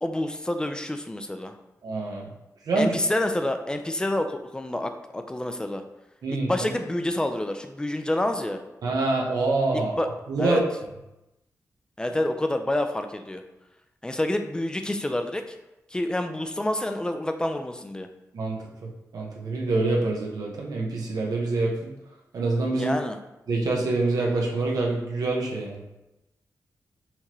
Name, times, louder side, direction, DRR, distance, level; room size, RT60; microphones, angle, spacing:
voice 1, 0.0-1.5 2.8-5.8 6.3-8.6 10.0-10.1 10.4-10.6 12.0-13.4 14.0-15.4 15.9-18.1 22.8-23.2, left 1 dB, 15° left, 7 dB, 0.4 m, -28 dB
voice 2, 1.8-2.3 2.7-2.9 6.2-6.5 8.8-10.0 10.3-10.6 18.3-21.9 22.3-22.9 23.5-25.8, right 3 dB, 90° right, -1 dB, 0.9 m, -26 dB
5.7 x 2.9 x 3.1 m, 0.94 s
wide cardioid pair, 115°, 6 cm